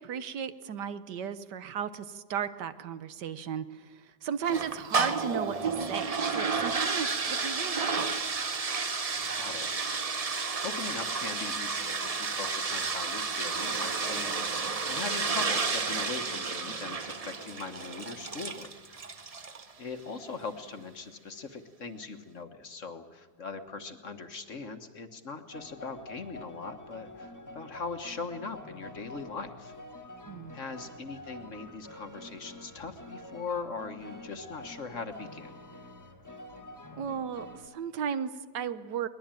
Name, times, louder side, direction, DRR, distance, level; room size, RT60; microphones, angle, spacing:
voice 1, 0.0-8.1 30.3-30.6 36.9-39.1, right 8 dB, 80° right, 12 dB, 1.6 m, -35 dB
sound 1, 4.4-19.7, right 4 dB, 35° right, 0.6 m, -31 dB
voice 2, 9.3-9.7 10.6-19.0 19.8-29.7 30.5-35.5, left 4 dB, 45° left, 8 dB, 1.6 m, -40 dB
sound 2, 25.5-37.7, left 1 dB, 10° left, 1.9 m, -47 dB
22.0 x 20.0 x 9.0 m, 1.3 s
omnidirectional pair, 1.8 m